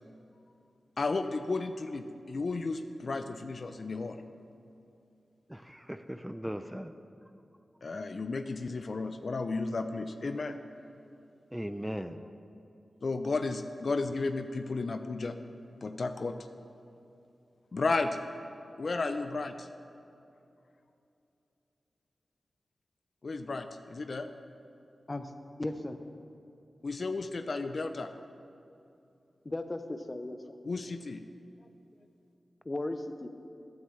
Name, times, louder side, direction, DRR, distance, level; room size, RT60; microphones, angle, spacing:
voice 1, 1.0-4.2 7.8-10.6 13.0-15.4 15.8-16.3 17.7-18.2 18.8-19.7 23.2-24.3 26.8-28.1 30.6-31.2, left 3 dB, 65° left, 8 dB, 0.5 m, -33 dB
voice 2, 5.5-6.9 11.5-12.3, equal, 5° right, 10 dB, 0.5 m, -38 dB
voice 3, 25.6-26.0 29.4-30.4 32.6-33.3, left 2 dB, 35° left, 8 dB, 0.7 m, -36 dB
14.5 x 9.2 x 3.2 m, 2.7 s
cardioid pair, 45°, 0 cm